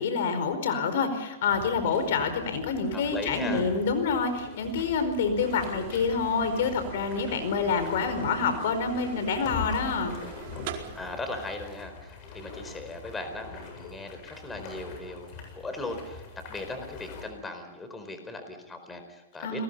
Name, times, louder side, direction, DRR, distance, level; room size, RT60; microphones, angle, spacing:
voice 1, 0.0-10.2 19.4-19.6, left 5 dB, 70° left, 9 dB, 4.9 m, -27 dB
sound 1, 1.5-17.2, left 5 dB, 40° left, 8.0 m, -43 dB
voice 2, 2.9-3.6 10.9-16.2 16.5-19.6, left 2 dB, 10° left, 7 dB, 4.6 m, -38 dB
sound 2, 5.4-11.5, right 9 dB, 55° right, 4.6 m, -43 dB
29.0 x 21.5 x 5.7 m, 0.95 s
hypercardioid pair, 130°, 0 cm